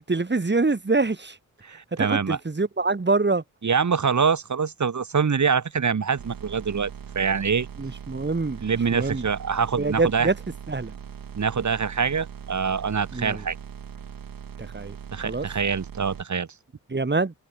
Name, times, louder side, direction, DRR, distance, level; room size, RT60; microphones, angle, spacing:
voice 1, 0.0-1.3 2.0-3.4 7.8-8.6 8.9-9.2 9.8-10.3 10.7-10.9 13.1-13.4 14.7-15.0 15.2-15.5 16.9-17.3, right 3 dB, 30° right, 5.5 m, -25 dB
voice 2, 1.6-2.4 3.6-7.7 8.6-10.3 11.3-13.5 15.1-16.5, right 6 dB, 60° right, 3.0 m, -25 dB
sound 1, 6.2-16.2, right 7 dB, 85° right, 5.5 m, -40 dB
open air
cardioid pair, 80°, 33 cm